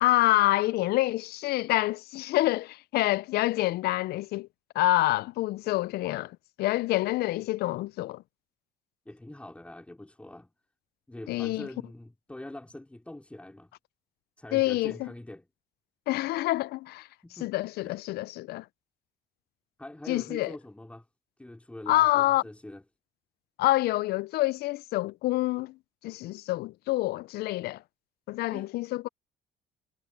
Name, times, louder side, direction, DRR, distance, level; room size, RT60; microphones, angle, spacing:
voice 1, 0.0-4.5 4.8-8.2 11.3-11.7 14.5-15.1 16.1-17.1 17.4-18.7 20.1-20.5 21.9-22.4 23.6-25.8 26.0-27.8 28.3-29.1, left 17 dB, 70° left, 0.4 m, -27 dB
voice 2, 9.0-10.5 11.1-13.7 14.4-15.5 17.2-17.5 17.8-18.0 19.8-21.1 21.4-22.8 28.5-28.7, left 1 dB, 5° left, 3.3 m, -44 dB
cardioid pair, 110°, 17 cm